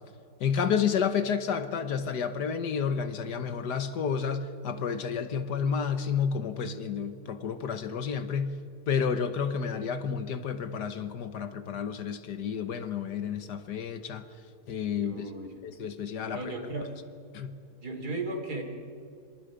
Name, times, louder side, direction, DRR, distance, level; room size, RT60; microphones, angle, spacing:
voice 1, 0.4-8.5 8.9-14.2 14.7-15.3 15.6-16.5 17.3-17.5, left 6 dB, 70° left, 10 dB, 1.6 m, -30 dB
voice 2, 15.0-15.5 16.3-16.9 17.8-18.6, right 2 dB, 60° right, 4 dB, 3.5 m, -35 dB
26.5 x 26.0 x 5.1 m, 2.4 s
omnidirectional pair, 1.9 m